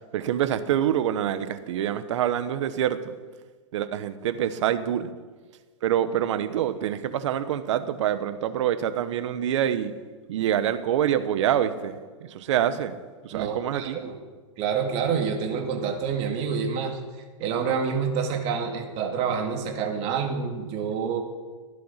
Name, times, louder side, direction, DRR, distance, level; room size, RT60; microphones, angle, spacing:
voice 1, 0.1-3.1 3.7-5.1 5.8-9.9 10.3-13.0 13.2-14.0, right 10 dB, 65° right, 12 dB, 1.2 m, -26 dB
voice 2, 13.3-14.2 14.6-17.0 17.4-21.2, right 6 dB, 35° right, 3 dB, 2.5 m, -27 dB
16.0 x 11.5 x 5.8 m, 1.4 s
hypercardioid pair, 140°, 17 cm